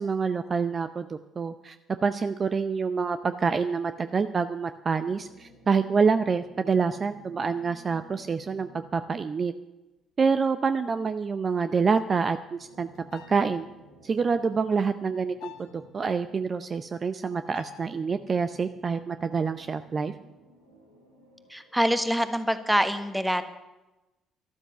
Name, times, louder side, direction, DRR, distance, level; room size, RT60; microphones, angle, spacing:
voice 1, 0.0-1.8 2.0-9.5 10.2-13.7 14.0-20.1, right 5 dB, 35° right, 11 dB, 0.6 m, -27 dB
sound 1, 5.0-9.5 12.4-16.6 17.4-22.7, equal, 85° right, 2.6 m, -55 dB
sound 2, 13.0-13.7 15.4-15.8 17.5-18.0, left 11 dB, 60° left, 1.1 m, -47 dB
voice 2, 21.5-23.5, equal, 5° right, 10 dB, 1.4 m, -25 dB
13.0 x 12.5 x 6.8 m, 1.0 s
figure-of-eight pair, 45°, 0 cm